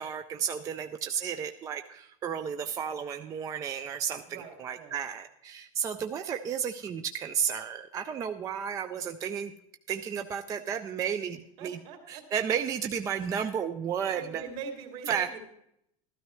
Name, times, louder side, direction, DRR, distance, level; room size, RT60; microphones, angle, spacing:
voice 1, 0.0-4.2 4.6-9.5 9.9-11.8 12.1-14.4 15.1-15.4, right 8 dB, 20° right, 7 dB, 0.3 m, -32 dB
voice 2, 4.3-5.0 11.6-12.2 14.1-15.4, right 6 dB, 55° right, 3 dB, 2.7 m, -42 dB
13.5 x 12.5 x 3.1 m, 0.77 s
supercardioid pair, 160°, 19 cm